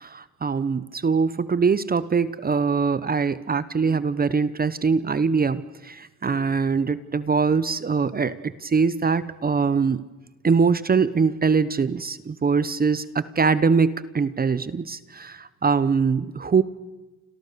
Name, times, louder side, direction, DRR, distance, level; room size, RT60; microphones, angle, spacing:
voice 1, 0.0-10.0 10.4-16.6, right 5 dB, 30° right, 16 dB, 0.9 m, -23 dB
29.5 x 26.0 x 6.9 m, 1.2 s
cardioid pair, 90°, 30 cm